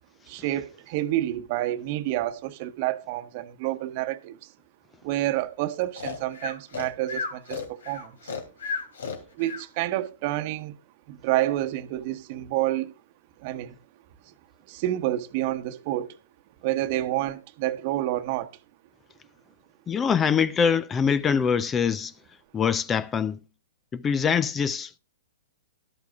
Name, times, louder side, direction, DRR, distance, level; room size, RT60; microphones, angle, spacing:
voice 1, 0.3-4.5 5.0-8.3 9.3-10.8 11.1-13.0 13.4-13.8 14.7-16.2 16.6-18.5, right 15 dB, 45° right, 1.1 m, -29 dB
Breathing, 6.0-9.7, left 5 dB, 70° left, 2.7 m, -33 dB
voice 2, 19.9-22.1 22.5-23.4 23.9-25.0, left 6 dB, 20° left, 0.5 m, -24 dB
13.5 x 12.0 x 2.4 m
figure-of-eight pair, 115°, 0 cm